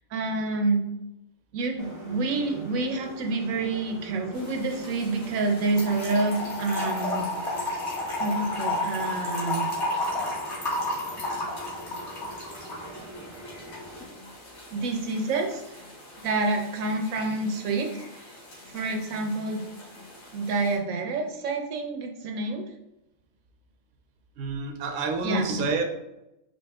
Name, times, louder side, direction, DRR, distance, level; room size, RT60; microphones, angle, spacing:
voice 1, 0.1-0.9 1.5-7.2 8.2-9.7 14.7-15.8 16.2-17.9 18.1-18.3 18.7-19.6 20.3-22.6 25.2-25.5, right 3 dB, 90° right, 3 dB, 1.1 m, -28 dB
sound 1, 1.8-14.1, right 1 dB, 20° left, 0.5 m, -44 dB
sound 2, 4.3-20.8, left 1 dB, 85° left, 1.8 m, -47 dB
Trickle dribble / Fill (with liquid), 5.8-12.9, left 2 dB, 60° left, 1.4 m, -30 dB
voice 2, 24.4-25.8, right 3 dB, 60° right, 3 dB, 0.5 m, -28 dB
5.2 x 2.6 x 2.3 m, 0.91 s
omnidirectional pair, 1.4 m